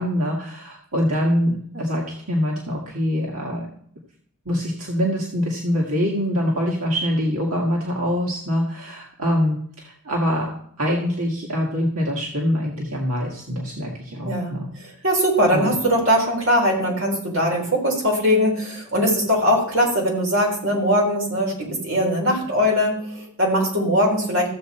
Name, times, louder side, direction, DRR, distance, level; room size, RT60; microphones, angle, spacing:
voice 1, 0.0-3.7 4.5-10.5 10.8-15.0 15.5-15.8, equal, 85° right, -2 dB, 1.8 m, -24 dB
voice 2, 14.2-14.6 15.0-24.5, equal, 65° right, -2 dB, 4.0 m, -21 dB
14.5 x 7.6 x 4.3 m, 0.65 s
head